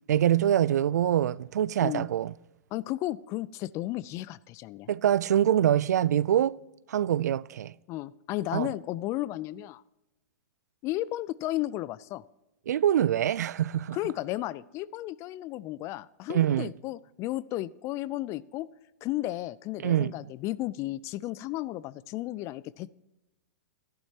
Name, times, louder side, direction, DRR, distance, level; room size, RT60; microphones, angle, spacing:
voice 1, 0.1-2.4 4.9-6.6 6.9-7.7 8.5-8.7 12.7-14.1 16.3-16.7 19.8-20.3, right 11 dB, 75° right, 0.4 m, -25 dB
voice 2, 2.7-4.9 7.9-9.8 10.8-12.2 13.9-18.7 19.0-22.9, left 16 dB, 35° left, 0.4 m, -34 dB
13.5 x 11.5 x 2.8 m
hypercardioid pair, 120°, 9 cm